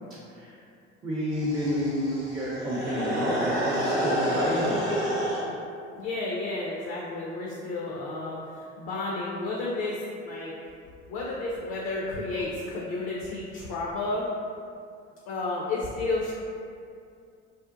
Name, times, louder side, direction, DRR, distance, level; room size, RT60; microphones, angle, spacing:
voice 1, 1.0-5.0, equal, 15° right, -7 dB, 0.4 m, -30 dB
sound 1, 1.3-5.5, equal, 85° right, 0.6 m, -29 dB
voice 2, 5.9-10.5 11.1-14.3 15.3-16.3, left 2 dB, 50° left, -4 dB, 0.4 m, -32 dB
2.6 x 2.0 x 2.5 m, 2.4 s
figure-of-eight pair, 60°, 34 cm